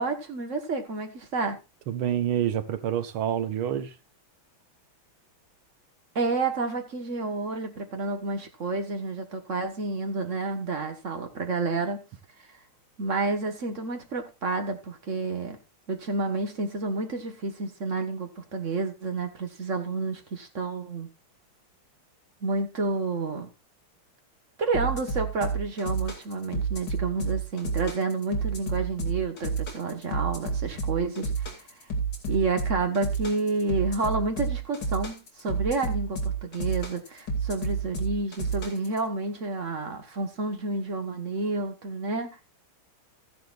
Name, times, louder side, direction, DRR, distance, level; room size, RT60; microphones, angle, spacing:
voice 1, 0.0-1.6 6.1-12.0 13.0-15.6 15.9-21.1 22.4-23.5 24.6-31.5 32.3-42.4, right 3 dB, 40° right, 1.6 m, -30 dB
voice 2, 1.9-4.0, right 10 dB, 90° right, 1.9 m, -27 dB
sound 1, 24.7-39.0, right 4 dB, 55° left, 3.1 m, -30 dB
14.0 x 10.5 x 2.5 m
omnidirectional pair, 2.3 m